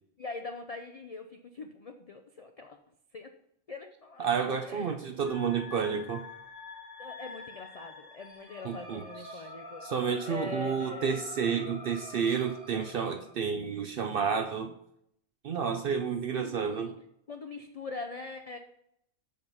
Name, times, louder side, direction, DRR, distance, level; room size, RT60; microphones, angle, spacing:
voice 1, 0.2-2.8 3.1-3.3 3.7-5.0 7.0-11.2 16.3-17.0 17.3-18.6, left 3 dB, 70° left, 5 dB, 0.3 m, -43 dB
voice 2, 4.2-6.2 8.6-9.0 9.3-9.4 9.8-14.7 15.4-16.9, right 6 dB, 65° right, 6 dB, 0.5 m, -30 dB
sound 1, 5.2-13.3, left 3 dB, 15° left, 1.5 m, -46 dB
7.1 x 5.1 x 4.0 m, 0.73 s
omnidirectional pair, 1.4 m